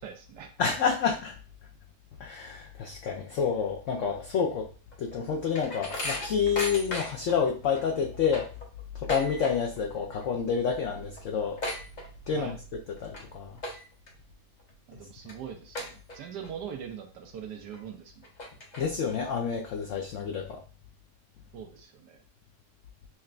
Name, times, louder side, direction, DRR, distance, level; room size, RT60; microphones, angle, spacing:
voice 1, 0.0-0.5 12.3-12.6 14.9-18.3 21.5-22.2, right 8 dB, 75° right, 5 dB, 1.3 m, -42 dB
voice 2, 0.6-1.3 2.2-4.7 5.0-8.5 9.0-11.6 12.3-12.5 13.0-13.5 18.8-20.6, left 6 dB, 85° left, 2 dB, 0.6 m, -28 dB
sound 1, 4.9-7.4 7.8-7.9 8.1-9.9 10.1-10.5 10.8-10.9 11.1-12.5 13.0-13.2 13.6-14.1 14.6-14.7 15.3-15.4 15.8-16.5 16.9-17.0 17.7-17.8 18.2-19.1, left 1 dB, 40° left, 0.7 m, -36 dB
5.9 x 2.2 x 2.4 m, 0.38 s
omnidirectional pair, 1.9 m